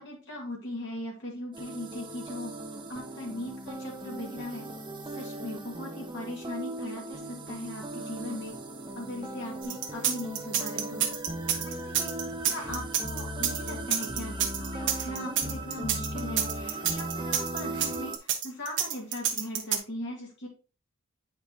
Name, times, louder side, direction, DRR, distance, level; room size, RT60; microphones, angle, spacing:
voice 1, 0.0-2.6 2.9-4.7 5.1-8.6 9.0-11.1 11.6-12.1 12.4-20.5, left 1 dB, 60° left, -2 dB, 2.0 m, -39 dB
sound 1, 1.5-18.2, right 1 dB, 25° right, 0.9 m, -38 dB
sound 2, 9.6-19.8, right 9 dB, 60° right, 1.2 m, -28 dB
9.0 x 5.1 x 2.9 m, 0.34 s
head